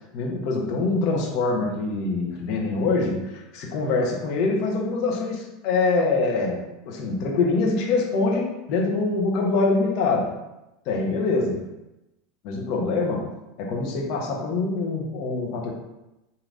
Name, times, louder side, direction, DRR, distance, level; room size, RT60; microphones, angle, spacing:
voice 1, 0.1-10.3 10.9-11.6 12.4-13.2 13.6-15.7, left 3 dB, 55° left, -1 dB, 1.1 m, -24 dB
5.1 x 2.8 x 2.7 m, 0.95 s
hypercardioid pair, 85°, 0 cm